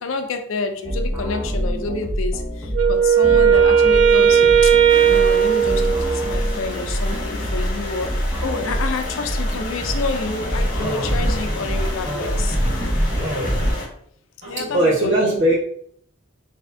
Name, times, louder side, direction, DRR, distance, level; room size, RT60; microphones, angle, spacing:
voice 1, 0.0-4.7 5.1-12.6 14.5-15.4, left 3 dB, 75° left, 6 dB, 0.5 m, -29 dB
sound 1, 0.8-13.7, equal, 15° right, 0.9 m, -25 dB
Wind instrument woodwind instrument, 2.7-6.6, right 7 dB, 80° right, 0.5 m, -16 dB
sound 2, 4.9-13.9, left 2 dB, 45° left, 1.3 m, -32 dB
voice 2, 14.4-15.6, right 1 dB, 65° right, -4 dB, 1.5 m, -19 dB
4.1 x 3.5 x 2.7 m, 0.64 s
head